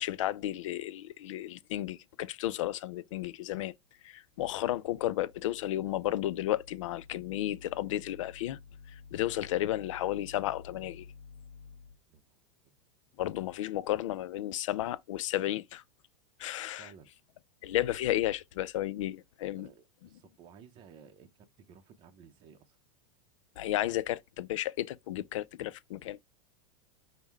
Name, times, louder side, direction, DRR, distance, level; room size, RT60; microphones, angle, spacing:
voice 1, 0.0-3.7 4.0-8.6 8.8-11.1 13.2-15.8 16.4-16.9 17.6-19.7 23.6-26.2, left 14 dB, 85° left, 0.4 m, -33 dB
voice 2, 12.1-12.4 16.8-17.1 19.4-22.8, right 7 dB, 30° right, 0.6 m, -56 dB
5.4 x 2.1 x 4.5 m
supercardioid pair, 145°, 16 cm